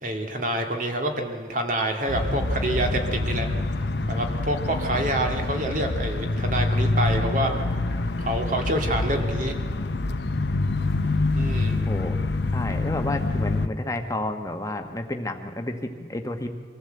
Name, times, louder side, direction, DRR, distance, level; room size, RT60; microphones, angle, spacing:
voice 1, 0.0-3.5 4.1-7.8 8.2-9.6 11.3-11.9, right 1 dB, 45° right, 4 dB, 2.1 m, -27 dB
sound 1, 2.1-13.7, left 2 dB, 65° left, 0.8 m, -26 dB
voice 2, 11.9-12.2 12.5-16.5, left 1 dB, 15° left, 5 dB, 1.2 m, -31 dB
23.5 x 14.5 x 7.9 m, 2.2 s
head